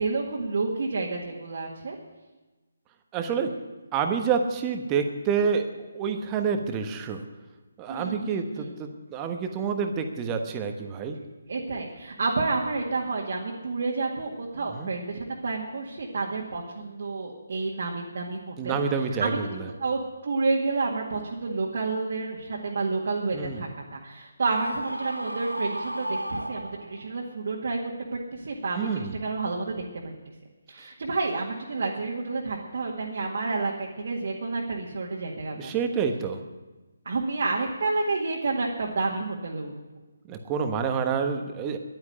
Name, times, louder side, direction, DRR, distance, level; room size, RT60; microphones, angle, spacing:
voice 1, 0.0-2.0 7.9-8.7 11.5-18.8 19.2-19.4 19.8-27.8 28.3-30.1 30.7-35.8 37.1-39.7, right 3 dB, 50° right, -2 dB, 2.0 m, -30 dB
voice 2, 3.1-3.5 3.9-7.2 7.8-11.2 14.7-14.9 18.6-19.7 23.3-23.6 28.7-29.2 35.6-36.4 40.3-41.8, right 6 dB, 20° right, 5 dB, 1.2 m, -28 dB
Screaming, 24.5-27.2, right 1 dB, 90° right, 0.9 m, -34 dB
11.0 x 9.7 x 10.0 m, 1.2 s
figure-of-eight pair, 145°, 0 cm